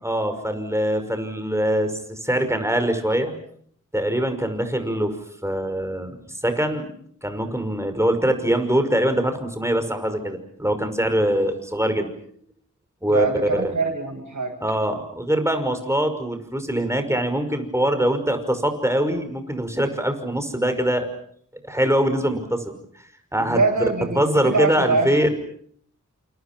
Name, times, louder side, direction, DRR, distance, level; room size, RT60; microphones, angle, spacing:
voice 1, 0.0-3.3 3.9-5.2 5.4-6.2 6.4-6.9 7.2-12.1 13.0-13.7 14.6-21.1 21.6-22.7 23.3-23.6 24.1-25.3, right 1 dB, 10° right, 7 dB, 5.7 m, -23 dB
voice 2, 13.1-14.6 23.4-25.1, right 3 dB, 65° right, 2 dB, 7.5 m, -23 dB
28.5 x 28.0 x 6.1 m, 0.63 s
wide cardioid pair, 60°, 32 cm